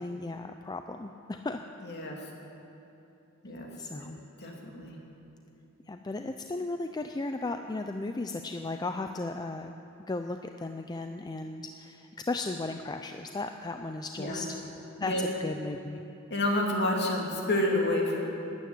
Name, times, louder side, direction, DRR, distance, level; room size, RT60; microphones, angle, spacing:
voice 1, 0.0-1.6 3.8-4.2 5.9-9.8 10.1-14.6 15.0-16.0, left 2 dB, 20° left, 6 dB, 0.4 m, -35 dB
voice 2, 1.8-2.2 3.4-3.7 3.9-4.0 4.4-4.9 14.2-14.4 15.0-15.2 16.3-18.2, left 1 dB, 50° left, -1 dB, 2.5 m, -29 dB
12.5 x 9.4 x 9.6 m, 2.9 s
head